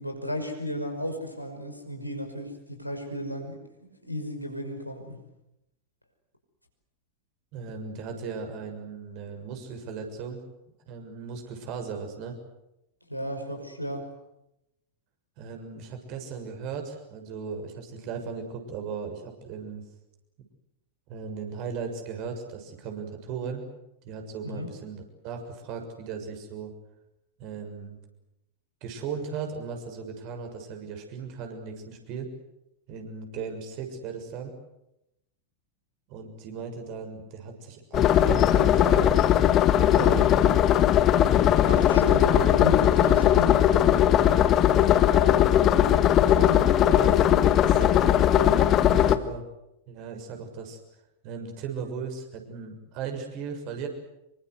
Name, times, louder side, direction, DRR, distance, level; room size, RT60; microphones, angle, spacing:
voice 1, 0.0-3.6 4.0-5.2 13.1-14.1 24.4-24.7 41.7-43.6 45.1-45.5 46.2-49.1, left 1 dB, 90° left, 3 dB, 5.6 m, -34 dB
voice 2, 7.5-10.4 10.9-12.4 15.4-19.8 21.1-23.6 24.0-26.7 27.4-28.0 28.8-32.3 32.9-34.5 36.1-39.1 39.7-40.6 44.2-44.5 47.7-47.8 48.9-49.4 49.9-50.8 51.2-53.9, right 5 dB, 45° right, 4 dB, 6.7 m, -37 dB
sound 1, 37.9-49.1, left 11 dB, 30° left, 1.6 m, -19 dB
27.0 x 24.0 x 8.2 m, 0.88 s
figure-of-eight pair, 90°, 0 cm